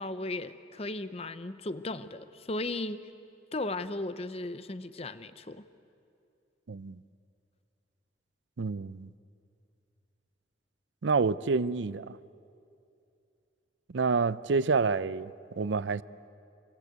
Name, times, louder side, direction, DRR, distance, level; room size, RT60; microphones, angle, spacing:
voice 1, 0.0-3.0 3.5-5.6, left 2 dB, 35° left, 0.8 m, -36 dB
voice 2, 6.7-7.0 8.6-9.1 11.0-12.2 13.9-16.0, right 4 dB, 80° right, 0.6 m, -28 dB
27.0 x 23.5 x 8.1 m
head